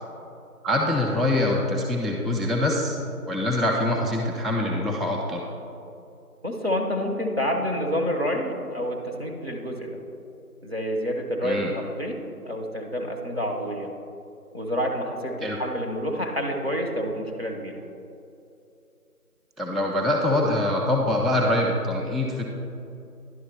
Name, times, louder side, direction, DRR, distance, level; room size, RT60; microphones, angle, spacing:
voice 1, 0.6-3.0 3.3-5.4 11.4-11.7 15.4-15.6 19.6-22.4, left 1 dB, ahead, -2 dB, 0.4 m, -24 dB
voice 2, 6.4-10.0 10.6-12.2 12.4-13.9 14.5-17.9, equal, 40° right, -1 dB, 0.8 m, -28 dB
11.0 x 3.7 x 4.5 m, 2.6 s
figure-of-eight pair, 175°, 46 cm